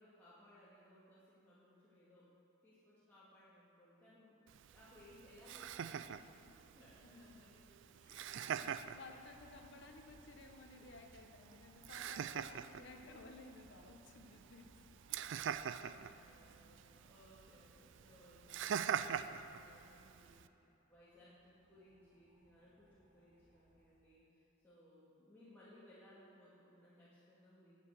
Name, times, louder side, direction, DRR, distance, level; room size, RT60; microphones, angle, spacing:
voice 1, 0.0-2.3 2.6-4.4 4.7-8.7 10.3-10.9 12.5-13.4 15.1-27.9, left 1 dB, 10° left, -11 dB, 2.1 m, -64 dB
Laughter, 4.5-20.5, right 8 dB, 65° right, 0.4 m, -45 dB
voice 2, 7.0-7.6 8.3-15.5 15.8-16.8, left 3 dB, 65° left, 4 dB, 1.1 m, -58 dB
sound 1, 7.9-24.1, equal, 40° right, 2.5 m, -69 dB
11.0 x 8.3 x 6.4 m, 2.9 s
head